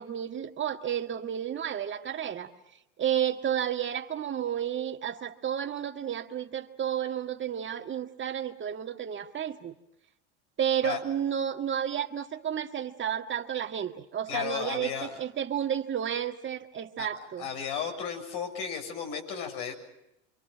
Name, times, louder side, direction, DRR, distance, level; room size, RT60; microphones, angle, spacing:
voice 1, 0.0-2.5 3.0-9.7 10.6-17.5, right 9 dB, 35° right, 6 dB, 1.8 m, -31 dB
voice 2, 14.3-15.1 17.0-17.1 17.4-19.7, left 7 dB, 65° left, 3 dB, 7.1 m, -34 dB
26.5 x 25.5 x 6.3 m, 0.86 s
hypercardioid pair, 90°, 35 cm